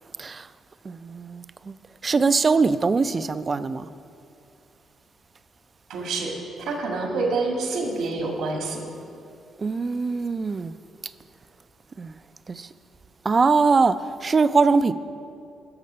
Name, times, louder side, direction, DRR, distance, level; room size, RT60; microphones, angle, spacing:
voice 1, 0.9-1.7 2.0-3.9 9.6-10.7 12.0-12.1 12.5-12.7 13.3-14.9, right 4 dB, 30° right, 0.3 m, -22 dB
voice 2, 5.9-6.3 6.6-8.8, right 3 dB, 80° right, 1.8 m, -27 dB
11.5 x 6.5 x 5.4 m
cardioid pair, 110°, 0 cm